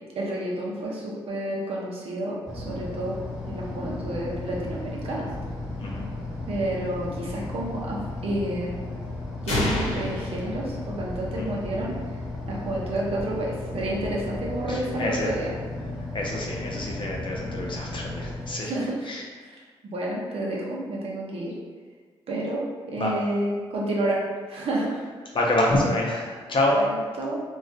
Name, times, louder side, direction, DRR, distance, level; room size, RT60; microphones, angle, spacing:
voice 1, 0.2-3.2 3.5-5.3 6.5-8.8 9.4-12.0 12.5-15.5 18.5-19.1 19.4-19.6 19.8-21.5 22.3-22.6 22.9-25.3 26.7-27.4, right 1 dB, 55° right, -4 dB, 0.7 m, -30 dB
sound 1, 2.4-18.5, left 2 dB, 5° right, 1.1 m, -34 dB
sound 2, 9.5-11.4, left 1 dB, 75° left, 0.8 m, -29 dB
voice 2, 14.7-15.4 16.1-18.7 19.1-19.2 23.0-23.1 25.3-26.8, left 1 dB, 45° left, -2 dB, 0.6 m, -27 dB
2.4 x 2.3 x 2.3 m, 1.5 s
supercardioid pair, 45°, 11 cm